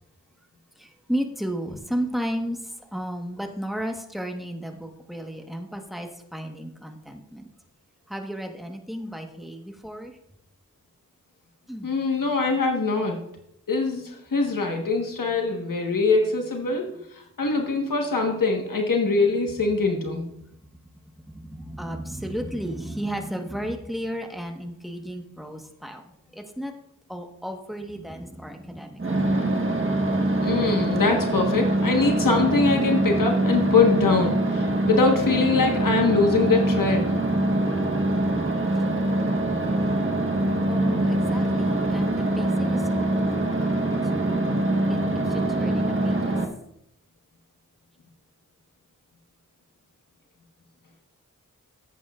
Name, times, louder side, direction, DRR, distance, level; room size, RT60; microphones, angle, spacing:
voice 1, 0.8-7.5 8.1-10.2 11.7-11.9 21.3-26.7 27.1-29.4 40.7-44.5 44.9-45.0 45.3-46.2, equal, ahead, 3 dB, 1.3 m, -34 dB
voice 2, 11.8-13.2 13.7-16.9 17.4-20.2 30.4-37.1, left 3 dB, 90° left, 2 dB, 1.4 m, -23 dB
sound 1, 29.0-46.4, right 1 dB, 40° right, 1.3 m, -24 dB
15.5 x 8.1 x 2.4 m, 0.78 s
wide cardioid pair, 65°, 32 cm